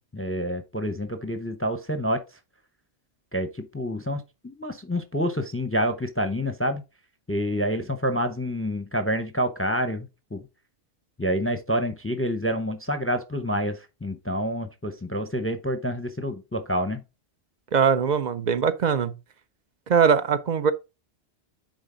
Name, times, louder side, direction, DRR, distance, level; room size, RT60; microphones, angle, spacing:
voice 1, 0.0-2.2 3.3-6.8 7.3-10.4 11.2-17.0, equal, 15° left, 0.6 m, -28 dB
voice 2, 17.7-19.2 19.9-20.7, right 6 dB, 55° right, 0.5 m, -21 dB
9.5 x 3.9 x 3.8 m
omnidirectional pair, 1.2 m